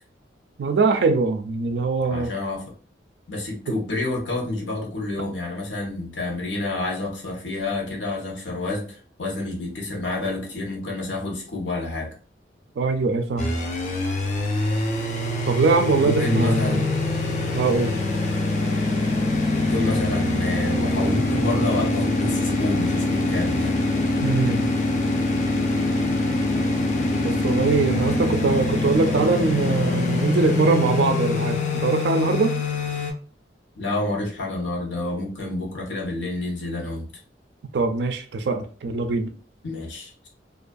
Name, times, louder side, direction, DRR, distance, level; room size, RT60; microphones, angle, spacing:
voice 1, 0.6-2.3 3.7-3.8 12.8-13.5 15.5-16.9 17.5-17.9 24.2-24.7 27.2-32.6 37.7-39.3, right 4 dB, 70° right, 0.4 m, -22 dB
voice 2, 2.1-2.7 3.3-12.1 16.0-16.9 19.6-23.8 33.8-37.1 39.6-40.3, left 2 dB, 85° left, 0.8 m, -28 dB
sound 1, 13.4-33.1, left 2 dB, 40° left, 0.4 m, -24 dB
2.5 x 2.3 x 2.3 m
head